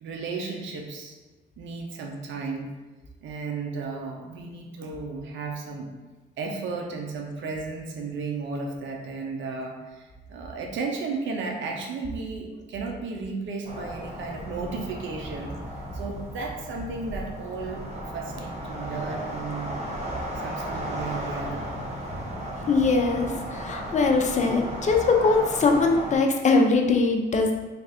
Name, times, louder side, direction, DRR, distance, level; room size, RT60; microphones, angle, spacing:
voice 1, 0.0-1.2 1.6-2.7 3.2-5.9 6.4-15.5 15.9-19.8 20.4-21.7, right 4 dB, 70° right, 1 dB, 0.6 m, -34 dB
sound 1, 13.6-26.2, right 1 dB, 35° right, 0.9 m, -35 dB
voice 2, 22.7-27.5, left 3 dB, 35° left, 3 dB, 0.6 m, -21 dB
3.3 x 2.4 x 4.1 m, 1.2 s
cardioid pair, 90°, 20 cm